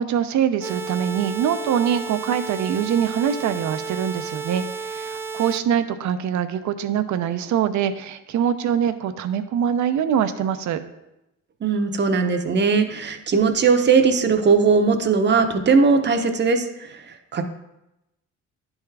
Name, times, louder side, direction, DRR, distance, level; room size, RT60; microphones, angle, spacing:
voice 1, 0.0-10.8, right 8 dB, 70° right, 11 dB, 0.6 m, -23 dB
sound 1, 0.6-5.6, right 5 dB, 10° right, 0.3 m, -32 dB
voice 2, 11.6-17.4, right 5 dB, 35° right, 6 dB, 0.7 m, -19 dB
10.5 x 3.6 x 3.3 m, 0.91 s
cardioid pair, 90°, 30 cm